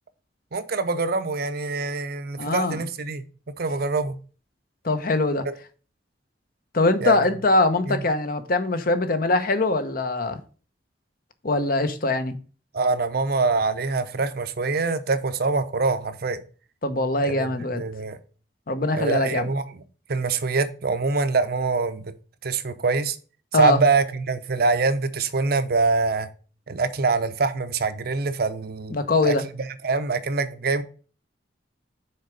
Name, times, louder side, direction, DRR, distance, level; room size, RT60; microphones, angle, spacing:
voice 1, 0.5-3.2 3.6-4.2 7.0-7.3 7.9-8.0 12.7-16.4 17.2-18.2 18.9-19.8 20.1-22.1 22.4-23.2 23.6-26.3 26.7-29.0 29.2-30.8, right 4 dB, 55° right, 0.7 m, -24 dB
voice 2, 2.4-2.8 4.8-5.5 6.7-10.4 11.4-12.4 16.8-17.8 18.7-19.5 23.5-23.8 28.9-29.4, left 2 dB, 50° left, 0.9 m, -22 dB
6.5 x 4.6 x 5.0 m
head